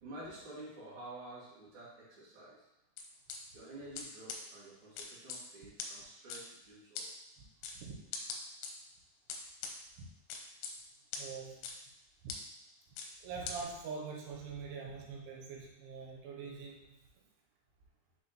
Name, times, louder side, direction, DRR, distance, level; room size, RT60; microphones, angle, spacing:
voice 1, 0.0-2.6 3.5-7.1 9.6-9.7, right 1 dB, 45° right, -9 dB, 1.8 m, -50 dB
sound 1, 3.0-3.4 4.0-4.1 4.3-4.4 5.0-5.4 5.8-5.9 6.3-6.4 7.0-7.1 7.6-7.8 8.1-8.7 9.3-9.7 10.3-10.7 11.1-11.2 11.6-11.7 12.3-12.4 13.0-13.1 13.5-13.6, left 6 dB, 80° left, 3.0 m, -40 dB
voice 2, 11.2-11.6 12.2-12.4 13.2-16.9, right 5 dB, 85° right, -1 dB, 3.3 m, -44 dB
6.8 x 4.9 x 3.0 m, 0.89 s
omnidirectional pair, 5.5 m